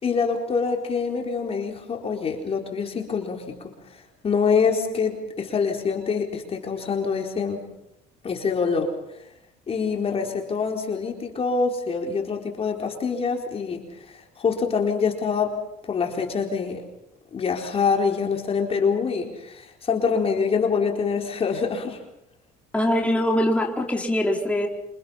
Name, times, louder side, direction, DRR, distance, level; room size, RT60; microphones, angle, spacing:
voice 1, 0.0-3.7 4.2-7.7 8.2-8.9 9.7-15.6 15.8-16.8 17.3-22.0, left 5 dB, 35° left, 2 dB, 4.3 m, -25 dB
voice 2, 22.7-24.7, left 1 dB, 10° left, 0 dB, 4.6 m, -22 dB
28.0 x 26.0 x 5.7 m, 0.84 s
cardioid pair, 110°, 17 cm